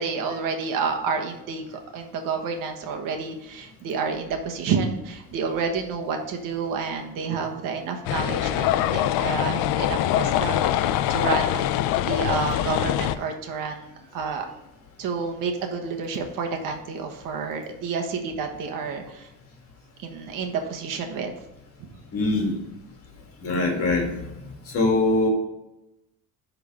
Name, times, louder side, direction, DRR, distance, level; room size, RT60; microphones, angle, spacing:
voice 1, 0.0-11.7 12.1-13.9 14.1-14.5 15.0-19.3 20.0-21.3 21.8-21.9, right 5 dB, 70° right, 3 dB, 1.4 m, -29 dB
sound 1, 8.0-13.1, left 12 dB, 80° left, 0.6 m, -24 dB
voice 2, 22.1-22.6 23.4-24.4 24.7-25.3, left 2 dB, 40° left, 1 dB, 2.2 m, -23 dB
10.5 x 3.9 x 4.9 m, 0.94 s
cardioid pair, 170°, 34 cm